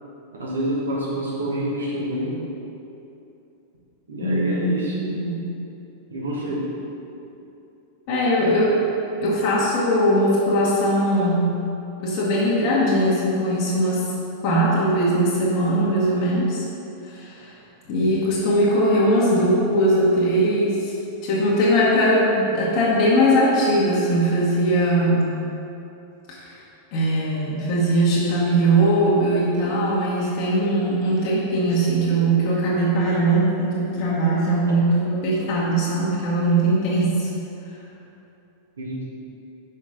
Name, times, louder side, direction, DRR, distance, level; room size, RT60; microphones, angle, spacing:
voice 1, 0.4-2.4 4.1-5.1 6.1-6.7 38.8-39.0, right 1 dB, 70° right, -5 dB, 1.5 m, -27 dB
voice 2, 4.2-5.5 8.1-8.8 9.2-11.6 12.0-14.1 14.4-16.6 17.0-17.5 17.9-20.9 21.2-25.3 26.4-26.6 26.9-37.3, right 1 dB, 45° left, -7 dB, 1.1 m, -20 dB
5.6 x 5.2 x 3.8 m, 2.8 s
figure-of-eight pair, 90°, 0 cm